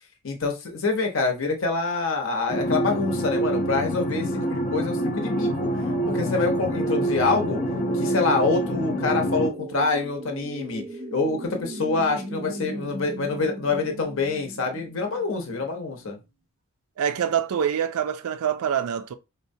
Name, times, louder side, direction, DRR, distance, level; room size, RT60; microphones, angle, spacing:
voice 1, 0.2-5.7 6.1-7.6 7.9-10.8 11.1-16.2, left 3 dB, 60° left, 0.8 m, -26 dB
sound 1, 2.5-9.5, right 1 dB, 35° left, 0.5 m, -26 dB
sound 2, 4.3-16.1, right 1 dB, 25° right, 0.5 m, -39 dB
voice 2, 17.0-19.1, right 8 dB, 80° right, 0.4 m, -25 dB
4.3 x 2.1 x 2.6 m
head